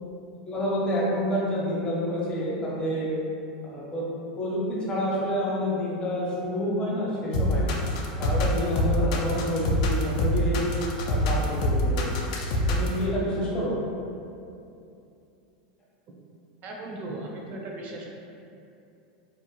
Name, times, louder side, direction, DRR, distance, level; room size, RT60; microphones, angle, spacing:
voice 1, 0.5-3.1 3.6-4.0 4.4-7.7 8.2-10.6 11.1-12.1 12.7-13.7, equal, 20° left, -6 dB, 0.6 m, -28 dB
sound 1, 7.3-13.0, left 1 dB, 60° left, 0.3 m, -25 dB
voice 2, 16.6-18.1, right 2 dB, 40° right, -1 dB, 0.4 m, -37 dB
2.6 x 2.0 x 3.0 m, 2.6 s
supercardioid pair, 130°, 4 cm